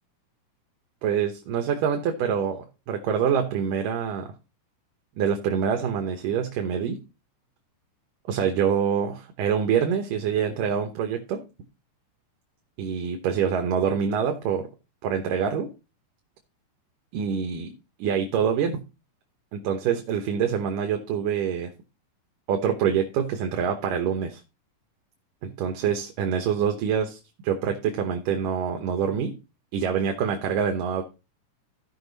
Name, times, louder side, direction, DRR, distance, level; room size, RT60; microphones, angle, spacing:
voice 1, 1.0-4.3 5.2-7.0 8.3-11.4 12.8-14.7 15.0-15.7 17.1-17.7 18.0-18.8 19.5-21.7 22.5-24.4 25.4-29.3 29.7-31.0, right 7 dB, 75° right, 4 dB, 2.6 m, -25 dB
15.0 x 5.6 x 3.9 m, 0.30 s
omnidirectional pair, 4.0 m